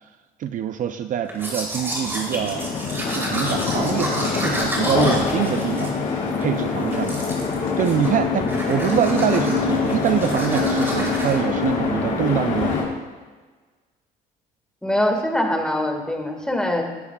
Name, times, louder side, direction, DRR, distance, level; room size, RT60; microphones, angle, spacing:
voice 1, 0.4-2.7 3.0-5.9 6.4-7.3 7.8-12.8, right 10 dB, 50° right, 9 dB, 0.5 m, -24 dB
Domestic sounds home sounds, 1.3-6.5 6.9-7.6 7.8-8.2 8.5-11.4, equal, 15° right, 3.2 m, -30 dB
sound 1, 1.8-12.8, left 5 dB, 50° left, 3.9 m, -24 dB
voice 2, 14.8-16.8, left 1 dB, 5° left, 2 dB, 1.8 m, -23 dB
18.0 x 9.8 x 2.3 m, 1.4 s
cardioid pair, 110°, 17 cm